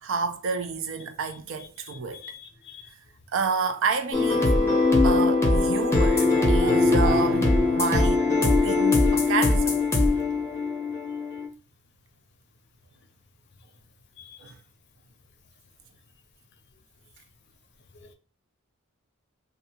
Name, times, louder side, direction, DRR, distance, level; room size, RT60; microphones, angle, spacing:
voice 1, 0.0-2.2 3.3-4.8 5.0-9.8 14.4-14.5, right 5 dB, 65° right, 0.4 m, -29 dB
voice 2, 2.2-2.8 14.2-14.4 18.0-18.1, left 8 dB, 55° left, 0.5 m, -46 dB
sound 1, 4.1-11.5, left 3 dB, 15° left, 0.6 m, -21 dB
2.7 x 2.3 x 2.7 m
head